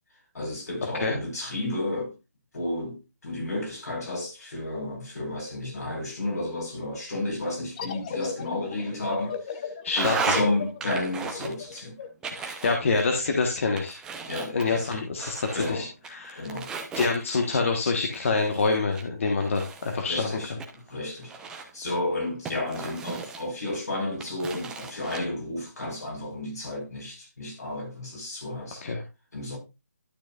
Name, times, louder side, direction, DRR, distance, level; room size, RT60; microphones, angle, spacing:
voice 1, 0.3-2.1 2.5-9.6 9.9-12.0 14.3-15.0 15.5-15.9 16.4-16.8 20.0-28.8 29.3-29.6, left 2 dB, 70° left, 4.8 m, -32 dB
sound 1, 7.8-13.1, left 7 dB, 30° left, 0.7 m, -38 dB
voice 2, 9.8-10.3 12.3-14.0 14.5-16.5 17.0-20.6 28.8-29.0, left 4 dB, 50° left, 1.3 m, -26 dB
sound 2, 9.9-10.5 10.8-11.8 12.2-13.3 13.8-15.7 16.0-17.6 18.1-20.0 20.6-21.8 22.5-23.8 24.2-25.2, right 5 dB, 10° right, 0.8 m, -35 dB
12.0 x 6.2 x 2.4 m
figure-of-eight pair, 155°, 9 cm